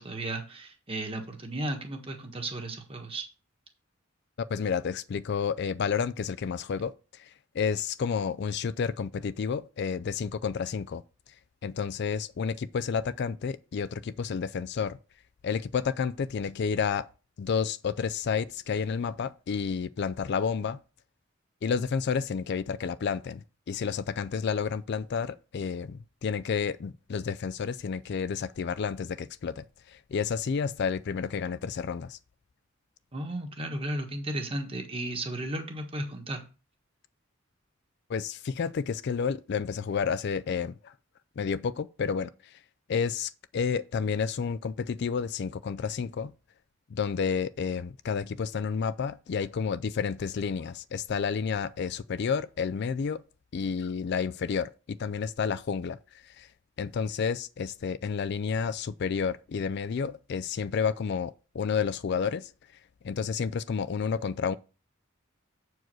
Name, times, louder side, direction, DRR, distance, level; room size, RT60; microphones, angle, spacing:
voice 1, 0.0-3.2 33.1-36.4, right 1 dB, 25° right, 1.4 m, -34 dB
voice 2, 4.4-11.0 11.6-15.0 15.4-17.1 17.4-20.8 21.6-32.2 38.1-40.9 41.4-42.6 42.9-46.3 46.9-53.2 53.5-56.0 56.2-56.5 56.8-62.5 63.0-64.6, left 6 dB, 55° left, 0.4 m, -30 dB
7.7 x 4.7 x 6.1 m
head